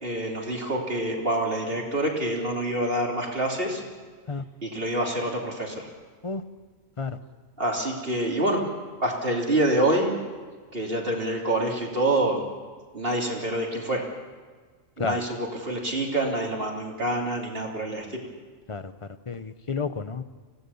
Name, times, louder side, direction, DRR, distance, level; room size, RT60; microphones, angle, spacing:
voice 1, 0.0-3.8 4.6-5.9 7.6-8.7 9.0-10.2 10.7-12.4 12.9-14.0 15.0-18.2, right 1 dB, 45° right, -1 dB, 3.4 m, -26 dB
voice 2, 19.3-20.2, left 4 dB, 30° left, 12 dB, 0.7 m, -30 dB
25.5 x 16.5 x 7.1 m, 1.5 s
omnidirectional pair, 1.4 m